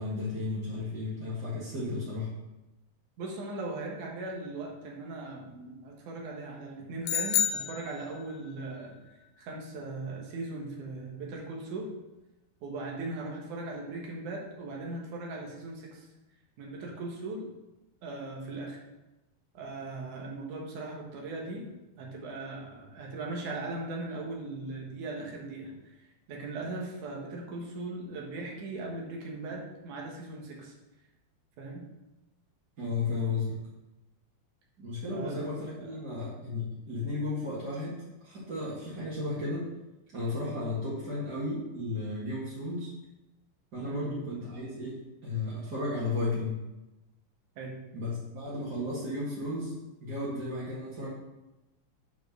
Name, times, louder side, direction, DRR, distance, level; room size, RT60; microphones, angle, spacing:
voice 1, 0.0-2.3 32.8-33.5 34.8-39.7 40.1-42.9 43.7-46.6 47.9-49.7 50.0-51.1, left 2 dB, 35° right, -10 dB, 2.1 m, -34 dB
voice 2, 3.2-9.0 9.4-11.9 12.6-16.1 16.6-17.5 18.0-18.8 19.5-21.7 22.0-30.7 31.6-31.9 35.1-35.5 35.8-36.0 43.8-44.2 47.6-47.8, right 2 dB, 70° right, -1 dB, 2.9 m, -39 dB
sound 1, 7.0-8.5, left 9 dB, 80° left, 1.6 m, -29 dB
7.1 x 4.7 x 6.6 m, 1.0 s
omnidirectional pair, 3.8 m